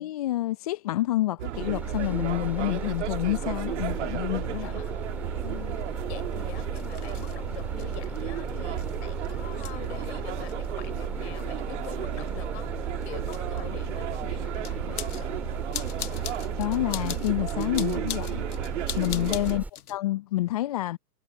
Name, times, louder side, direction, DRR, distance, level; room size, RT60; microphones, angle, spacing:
voice 1, 0.0-4.8 16.6-18.4 19.0-19.6 19.9-21.0, left 15 dB, 25° left, 0.6 m, -28 dB
sound 1, 1.4-19.6, right 13 dB, 45° right, 2.1 m, -34 dB
Bus, 1.5-19.7, right 2 dB, 5° right, 2.7 m, -36 dB
sound 2, 2.9-3.0 3.7-3.8 4.8-20.0, left 10 dB, 65° left, 1.2 m, -43 dB
voice 2, 4.3-4.9 5.4-12.7 13.0-15.3 19.0-19.6, left 16 dB, 40° left, 4.9 m, -44 dB
hypercardioid pair, 130°, 49 cm